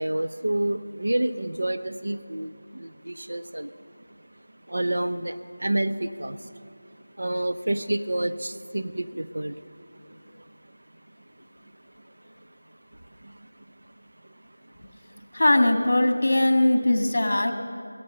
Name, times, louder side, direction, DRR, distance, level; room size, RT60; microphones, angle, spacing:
voice 1, 0.0-2.5 3.1-3.7 4.7-5.3 5.6-6.4 7.2-9.5, right 1 dB, 70° right, 10 dB, 0.8 m, -28 dB
voice 2, 15.3-17.5, left 1 dB, 50° left, 6 dB, 1.7 m, -20 dB
17.0 x 15.0 x 5.6 m, 2.4 s
figure-of-eight pair, 175°, 0 cm